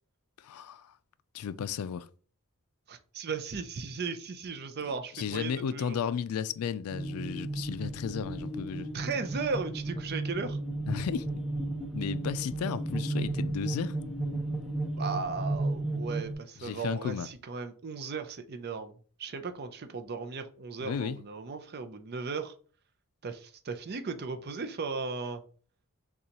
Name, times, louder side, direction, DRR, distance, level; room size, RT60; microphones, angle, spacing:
voice 1, 0.4-0.9 1.3-2.1 4.8-8.9 10.9-11.4 11.9-14.0 16.6-17.3 20.8-21.2, left 7 dB, 70° left, 0.3 m, -34 dB
voice 2, 2.9-6.0 8.9-10.6 15.0-22.5 23.2-25.4, right 4 dB, 45° right, 0.5 m, -36 dB
sound 1, 6.9-16.3, right 2 dB, ahead, 0.5 m, -34 dB
6.6 x 2.3 x 2.9 m
head